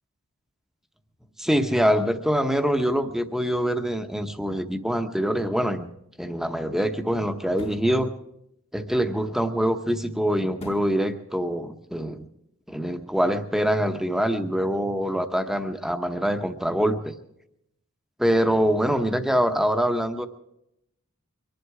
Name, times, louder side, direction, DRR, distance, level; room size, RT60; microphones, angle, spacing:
voice 1, 1.4-5.9 6.2-8.1 8.7-12.3 12.7-17.1 18.2-20.3, equal, ahead, 8 dB, 0.8 m, -24 dB
sound 1, 5.6-5.7 7.4-7.9 10.6-11.0 11.5-11.6, left 1 dB, 30° left, 1.0 m, -40 dB
23.5 x 11.5 x 4.8 m, 0.81 s
head